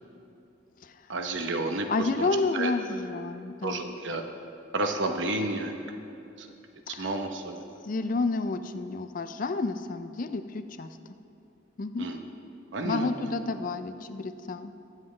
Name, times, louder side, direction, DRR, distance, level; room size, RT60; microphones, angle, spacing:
voice 1, 1.1-2.7 3.6-4.2 4.7-5.8 6.4-6.5 6.9-7.6 12.0-12.2 12.7-13.3, right 2 dB, 65° right, 5 dB, 0.9 m, -31 dB
voice 2, 1.9-3.9 6.9-7.2 7.8-10.9 11.8-12.1 12.8-14.7, left 3 dB, 40° left, 10 dB, 0.4 m, -30 dB
21.0 x 7.5 x 3.2 m, 2.6 s
head